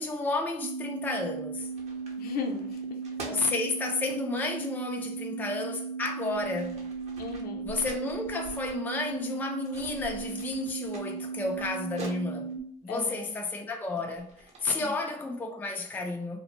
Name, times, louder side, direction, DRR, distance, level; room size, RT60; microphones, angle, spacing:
voice 1, 0.0-1.7 3.3-6.8 7.6-12.5 12.8-14.3 14.6-16.4, left 3 dB, 10° left, 0.3 m, -32 dB
sound 1, 0.6-12.6, right 5 dB, 80° right, 0.4 m, -37 dB
Paper thrown around in the air, 1.0-1.2 1.6-4.2 5.4-5.5 6.0-9.4 9.6-12.6 13.3-14.7, right 2 dB, 40° right, 0.8 m, -47 dB
voice 2, 2.2-3.0 6.4-6.5 7.2-7.7 12.9-13.3 14.8-14.9, left 5 dB, 60° left, 0.6 m, -36 dB
2.5 x 2.1 x 2.9 m
cardioid pair, 110°, 17 cm